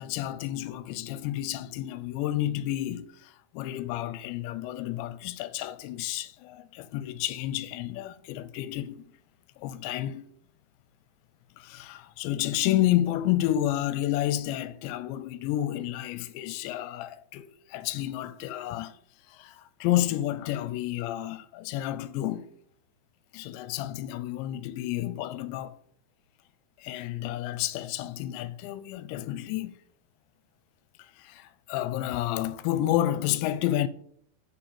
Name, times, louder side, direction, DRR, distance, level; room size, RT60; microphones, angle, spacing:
voice 1, 0.0-9.0 9.6-10.3 11.6-19.0 19.3-22.5 23.3-25.7 26.8-29.8 31.2-33.9, left 13 dB, 80° left, 2.8 m, -30 dB
8.6 x 5.8 x 7.0 m
omnidirectional pair, 5.4 m